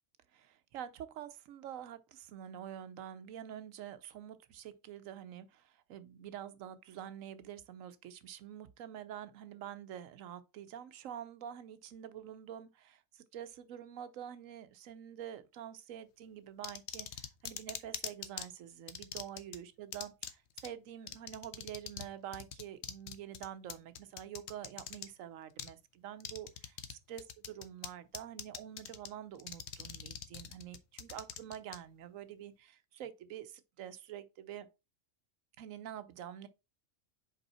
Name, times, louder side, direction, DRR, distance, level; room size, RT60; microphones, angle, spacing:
voice 1, 0.3-34.7 35.6-36.5, right 10 dB, 85° right, 1.1 m, -47 dB
sound 1, 16.6-18.5 18.9-19.6 19.9-20.3 20.6-20.7 21.1-22.1 22.3-25.1 25.6-25.7 26.2-26.9 27.2-27.9 28.1-29.1 29.4-31.8, left 8 dB, 65° left, 0.9 m, -42 dB
5.3 x 4.9 x 4.2 m
omnidirectional pair, 1.3 m